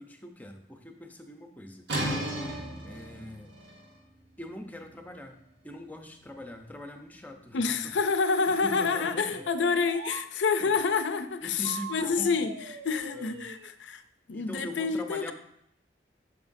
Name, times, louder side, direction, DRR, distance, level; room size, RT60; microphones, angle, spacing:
voice 1, 0.0-1.9 2.8-3.5 4.4-5.4 5.6-7.6 7.8-7.9 8.5-9.5 10.6-10.7 11.4-12.5 13.1-13.4 14.3-15.3, left 1 dB, 10° left, 4 dB, 0.6 m, -42 dB
sound 1, 1.9-7.5, right 1 dB, 60° right, 1.7 m, -37 dB
voice 2, 7.5-12.5 12.8-14.0 14.3-15.3, left 5 dB, 80° left, 9 dB, 0.5 m, -28 dB
sound 2, 8.5-10.3 11.6-13.7, right 5 dB, 90° right, 0.6 m, -42 dB
9.3 x 6.4 x 2.6 m, 0.74 s
head